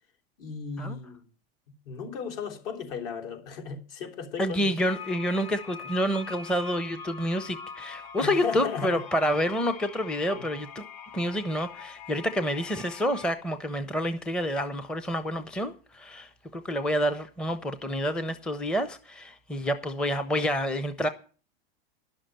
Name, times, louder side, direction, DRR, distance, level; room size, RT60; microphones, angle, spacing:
voice 1, 0.4-1.2 1.8-4.8 8.2-9.0 10.3-10.5, left 5 dB, 65° left, 3.5 m, -35 dB
voice 2, 4.4-10.8 11.1-21.1, equal, 5° left, 0.6 m, -28 dB
sound 1, 4.9-13.3, left 6 dB, 45° left, 1.5 m, -43 dB
11.0 x 6.5 x 8.9 m
supercardioid pair, 145°, 30 cm